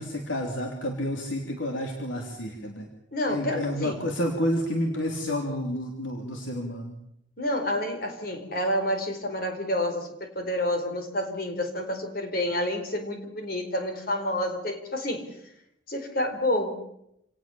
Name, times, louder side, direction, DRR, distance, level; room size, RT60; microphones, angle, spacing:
voice 1, 0.0-2.9 3.3-7.0, left 1 dB, 90° left, 2 dB, 3.5 m, -30 dB
voice 2, 3.1-4.0 7.4-15.3 15.9-16.7, left 1 dB, 50° left, 6 dB, 4.6 m, -29 dB
28.0 x 18.5 x 7.2 m, 0.77 s
head